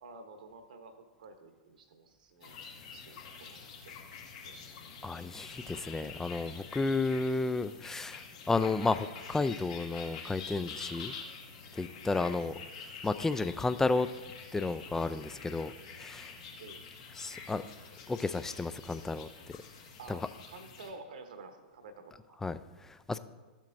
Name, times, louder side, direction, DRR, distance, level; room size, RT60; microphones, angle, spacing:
voice 1, 0.0-2.6 2.9-4.0 4.4-4.6 12.3-12.4 16.6-16.8 20.0-22.4, right 3 dB, 70° right, 7 dB, 1.0 m, -51 dB
sound 1, 2.4-20.9, left 5 dB, 60° left, 1.8 m, -47 dB
voice 2, 5.0-11.1 11.7-12.5 13.0-14.1 14.5-16.3 17.2-17.6 18.1-19.6 20.1-20.2 22.4-23.2, left 3 dB, 10° left, 12 dB, 0.4 m, -32 dB
12.5 x 7.4 x 2.6 m, 1.2 s
hypercardioid pair, 105°, 5 cm